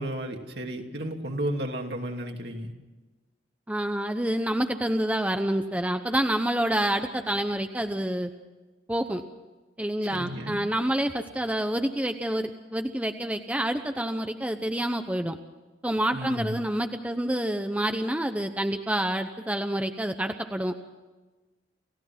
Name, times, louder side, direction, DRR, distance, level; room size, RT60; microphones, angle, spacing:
voice 1, 0.0-2.7 10.1-10.6 16.1-16.6, right 1 dB, 60° right, 2 dB, 2.8 m, -33 dB
voice 2, 3.7-8.3 8.9-9.2 9.8-15.4 15.8-20.7, right 1 dB, 10° right, 6 dB, 0.8 m, -28 dB
29.0 x 16.0 x 5.9 m, 1.2 s
head